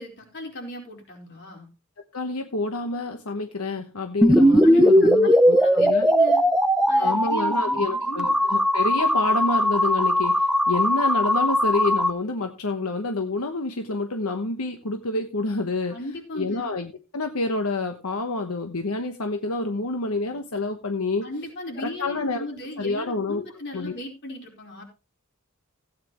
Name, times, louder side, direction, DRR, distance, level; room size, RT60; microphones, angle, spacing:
voice 1, 0.0-1.7 4.6-6.5 6.9-8.4 15.9-16.7 21.2-24.8, left 1 dB, 55° left, 1 dB, 4.4 m, -37 dB
voice 2, 2.1-6.1 7.0-16.0 16.3-21.3 21.8-22.4 22.8-23.4 23.7-23.9, left 2 dB, 85° left, 6 dB, 1.1 m, -28 dB
sound 1, 4.2-12.1, equal, 5° right, 0.7 m, -19 dB
16.0 x 9.4 x 3.1 m, 0.30 s
head